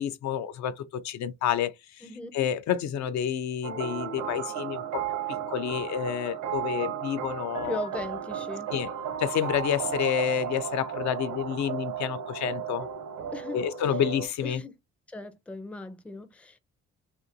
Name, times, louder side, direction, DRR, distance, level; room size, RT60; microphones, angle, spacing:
voice 1, 0.0-2.1 2.3-5.0 5.5-7.9 8.7-8.9 9.2-12.9 13.5-14.6, left 9 dB, 70° left, 0.4 m, -29 dB
voice 2, 2.0-2.3 7.6-8.7 13.3-13.6 14.4-14.7 15.1-16.6, left 2 dB, 5° left, 0.4 m, -38 dB
sound 1, 3.6-14.3, right 8 dB, 70° right, 0.8 m, -34 dB
2.8 x 2.5 x 2.6 m
cardioid pair, 90°, 30 cm